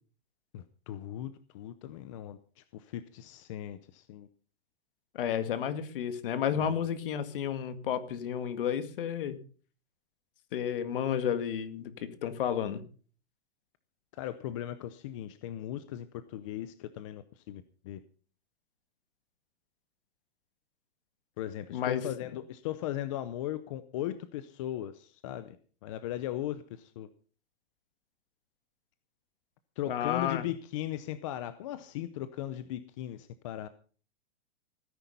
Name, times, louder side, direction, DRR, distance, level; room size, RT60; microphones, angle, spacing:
voice 1, 0.5-4.3 6.6-6.8 14.1-18.0 21.4-25.6 25.8-27.1 29.8-33.7, left 12 dB, 30° left, 13 dB, 0.6 m, -38 dB
voice 2, 5.1-9.4 10.5-12.8 21.7-22.0 29.9-30.4, left 9 dB, 55° left, 10 dB, 2.0 m, -31 dB
17.5 x 10.0 x 5.4 m, 0.42 s
hypercardioid pair, 165°, 33 cm